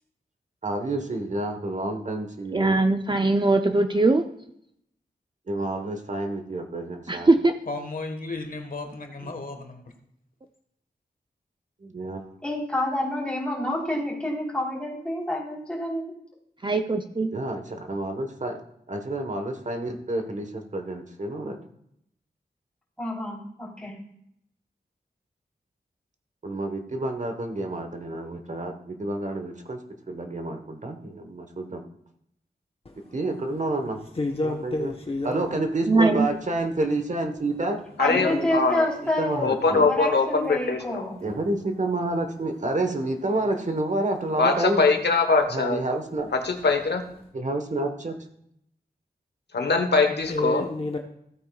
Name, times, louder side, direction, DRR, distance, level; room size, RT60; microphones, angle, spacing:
voice 1, 0.6-2.8 5.5-7.3 9.2-9.3 11.8-12.3 17.3-18.6 18.9-21.6 26.4-29.8 30.1-31.8 33.1-34.0 34.4-34.9 35.2-37.8 39.2-39.9 41.2-44.8 45.5-46.3 47.3-48.2, right 2 dB, 45° right, 1.2 m, -29 dB
voice 2, 2.5-4.2 7.1-7.5 16.6-17.3 35.9-36.3, right 2 dB, 30° right, 0.5 m, -21 dB
voice 3, 7.7-9.8, left 3 dB, 55° left, 1.4 m, -34 dB
voice 4, 12.4-16.0 23.0-23.9 38.0-41.2, left 1 dB, 5° left, 3.7 m, -28 dB
voice 5, 34.1-35.6 38.1-38.5 50.3-51.0, left 1 dB, 35° left, 1.0 m, -29 dB
voice 6, 38.0-38.8 39.4-41.0 44.4-45.8 46.3-47.0 49.5-50.6, left 4 dB, 85° left, 1.1 m, -22 dB
15.0 x 8.8 x 2.3 m
wide cardioid pair, 115°, 17 cm